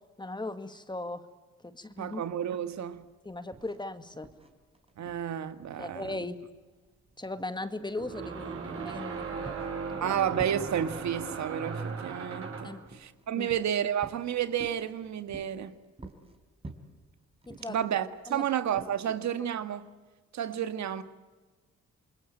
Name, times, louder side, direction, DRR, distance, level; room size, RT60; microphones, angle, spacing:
voice 1, 0.2-1.3 1.6-2.2 3.2-4.3 5.8-6.4 7.2-10.2 12.6-12.9 13.3-13.5 17.5-17.9 18.3-18.5, left 2 dB, 15° left, 2.0 m, -38 dB
sound 1, 1.9-19.0, right 2 dB, 20° right, 4.3 m, -51 dB
voice 2, 2.0-3.0 5.0-6.1 10.0-15.7 17.7-19.9 20.3-21.0, right 9 dB, 65° right, 1.8 m, -31 dB
sound 2, 6.0-6.1 8.0-12.8, right 5 dB, 45° right, 7.3 m, -37 dB
28.5 x 21.5 x 9.0 m
cardioid pair, 90°, 30 cm